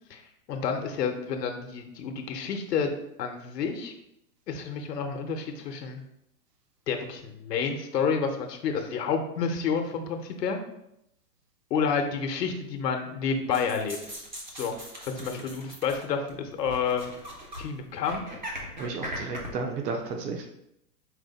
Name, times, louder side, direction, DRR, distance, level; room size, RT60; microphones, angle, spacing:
voice 1, 0.1-2.9 3.2-3.9 4.5-6.0 6.9-10.6 11.7-14.0 14.6-14.8 15.1-17.1 17.6-18.2, left 6 dB, 85° left, 5 dB, 0.8 m, -29 dB
sound 1, 13.5-16.3 16.6-17.6 17.9-19.5, equal, 35° right, 0.4 m, -39 dB
voice 2, 15.1-15.4 18.8-20.5, right 4 dB, 75° right, 2 dB, 0.8 m, -33 dB
4.5 x 2.1 x 3.9 m, 0.79 s
hypercardioid pair, 175°, 48 cm